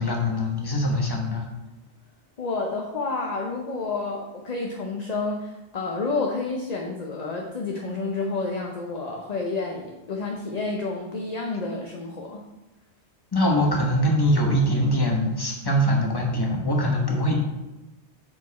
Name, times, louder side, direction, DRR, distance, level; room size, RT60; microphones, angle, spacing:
voice 1, 0.0-1.5 13.3-17.3, equal, 20° left, 0 dB, 1.0 m, -23 dB
voice 2, 2.4-12.4, left 3 dB, 40° left, 1 dB, 0.7 m, -30 dB
6.2 x 4.9 x 4.1 m, 1.0 s
omnidirectional pair, 1.2 m